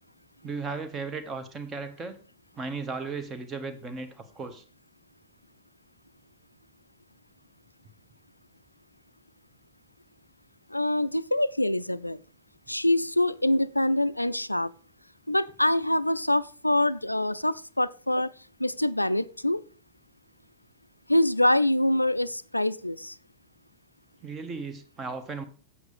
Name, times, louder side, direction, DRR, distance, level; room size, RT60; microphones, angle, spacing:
voice 1, 0.4-2.2 2.5-4.6 24.2-25.4, right 4 dB, 20° right, 1.4 m, -36 dB
voice 2, 10.7-12.2 12.7-14.7 15.3-18.3 18.6-19.6 21.1-23.1, left 1 dB, 85° left, 0.3 m, -25 dB
8.1 x 7.2 x 5.1 m
figure-of-eight pair, 90°, 0 cm